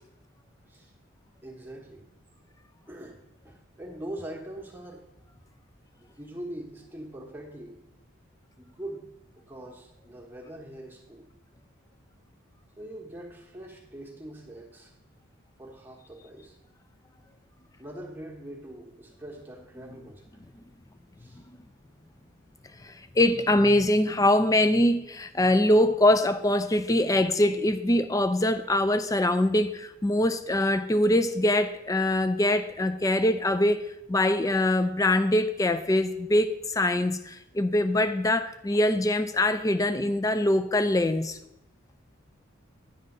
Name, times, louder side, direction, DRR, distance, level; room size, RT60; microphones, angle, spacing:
voice 1, 1.4-2.0 2.9-5.0 6.0-7.8 8.6-9.0 9.3-11.3 12.8-14.9 15.6-16.6 17.8-20.4 21.2-21.4 22.0-22.2, right 1 dB, 10° right, 1.2 m, -42 dB
voice 2, 22.8-33.8 34.1-41.4, left 1 dB, 15° left, 0.3 m, -23 dB
9.7 x 3.8 x 6.6 m
head